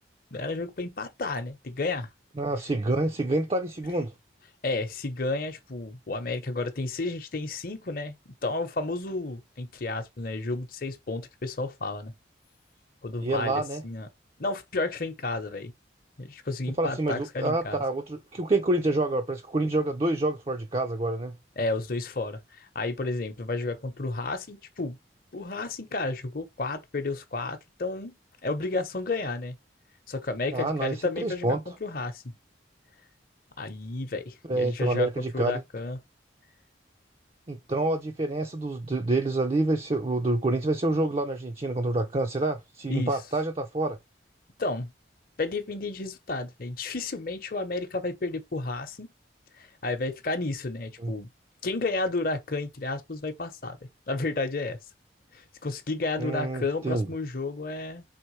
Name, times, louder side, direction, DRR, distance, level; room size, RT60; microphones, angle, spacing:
voice 1, 0.3-2.1 4.6-8.2 8.4-12.1 13.0-14.1 14.4-15.7 16.2-17.8 21.6-25.0 25.3-28.1 28.4-29.6 30.1-32.3 33.6-35.1 35.3-36.0 42.9-43.2 44.6-44.9 45.4-49.1 49.6-51.3 51.6-53.8 54.1-54.8 55.3-58.0, left 3 dB, 50° left, 0.9 m, -32 dB
voice 2, 2.4-4.1 13.2-13.8 16.8-21.3 30.5-31.6 34.5-35.6 37.5-44.0 51.0-51.1 56.2-57.1, right 2 dB, 30° right, 0.5 m, -27 dB
4.4 x 3.5 x 3.1 m
head